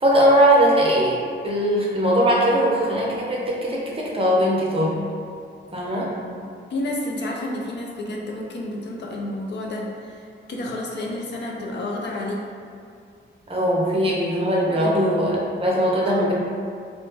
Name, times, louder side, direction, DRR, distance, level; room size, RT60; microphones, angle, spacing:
voice 1, 0.0-5.0 5.7-6.1 13.5-16.3, equal, 30° right, -5 dB, 0.5 m, -20 dB
voice 2, 6.7-12.5 14.8-15.3 16.0-16.3, left 1 dB, 60° left, -1 dB, 0.4 m, -30 dB
2.5 x 2.1 x 3.2 m, 2.3 s
wide cardioid pair, 110°, 20 cm